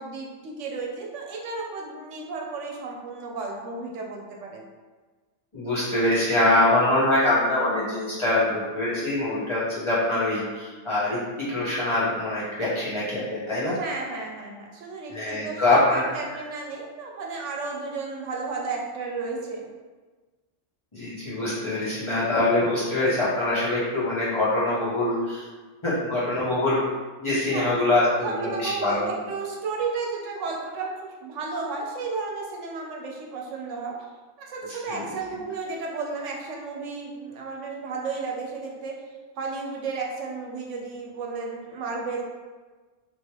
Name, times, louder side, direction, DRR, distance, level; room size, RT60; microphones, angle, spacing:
voice 1, 0.0-4.6 13.7-19.6 27.5-27.8 28.2-34.0 34.5-39.0 39.4-42.2, right 4 dB, 80° right, 0 dB, 0.9 m, -33 dB
voice 2, 5.5-13.8 15.1-16.4 20.9-25.4 25.8-26.8 27.2-29.1 34.7-34.8, left 2 dB, 25° left, -11 dB, 1.1 m, -24 dB
3.1 x 2.9 x 2.9 m, 1.3 s
omnidirectional pair, 1.3 m